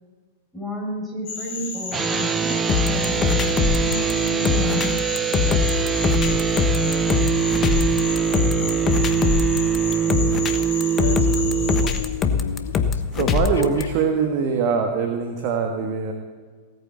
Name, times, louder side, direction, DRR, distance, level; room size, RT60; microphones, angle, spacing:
voice 1, 0.5-4.9 5.4-5.6, left 1 dB, 5° left, 6.1 m, -32 dB
sound 1, 1.3-12.0, left 4 dB, 45° left, 5.2 m, -32 dB
sound 2, 1.9-11.9, right 8 dB, 20° right, 0.6 m, -23 dB
sound 3, 2.7-13.8, left 6 dB, 30° left, 1.1 m, -22 dB
voice 2, 11.0-13.3, left 9 dB, 70° left, 0.4 m, -33 dB
voice 3, 13.1-16.1, right 5 dB, 50° right, 1.5 m, -23 dB
17.5 x 9.2 x 7.7 m
figure-of-eight pair, 95°, 0 cm